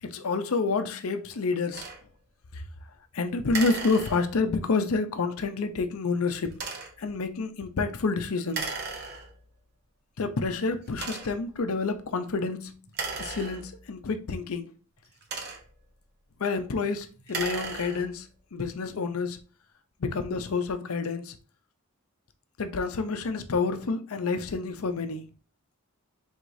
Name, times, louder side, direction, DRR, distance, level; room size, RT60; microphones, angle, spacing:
voice 1, 0.0-1.8 2.5-2.6 3.1-6.5 7.0-8.7 10.2-12.8 13.2-14.7 16.4-19.4 20.0-21.4 22.6-25.3, left 4 dB, 80° left, 0.6 m, -29 dB
sound 1, 1.7-2.0 3.5-4.5 6.5-7.1 8.5-9.5 10.2-10.3 10.9-11.5 12.9-14.0 15.0-15.9 17.2-18.2, right 4 dB, 45° right, 0.8 m, -36 dB
4.8 x 3.6 x 2.6 m
head